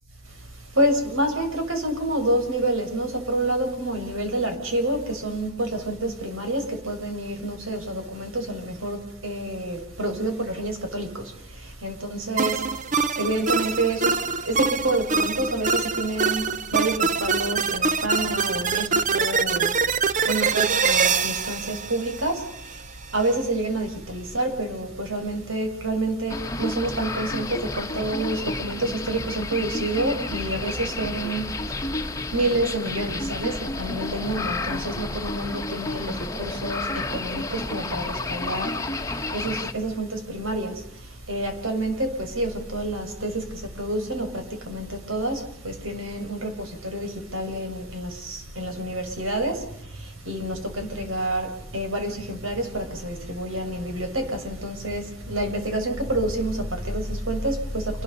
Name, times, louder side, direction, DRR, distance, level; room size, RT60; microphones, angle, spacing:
voice 1, 0.2-58.0, right 1 dB, 85° right, 6.2 m, -28 dB
sound 1, 12.4-22.8, right 5 dB, 40° right, 0.8 m, -24 dB
sound 2, 26.3-39.7, left 2 dB, 15° left, 1.2 m, -31 dB
29.0 x 20.5 x 5.5 m
head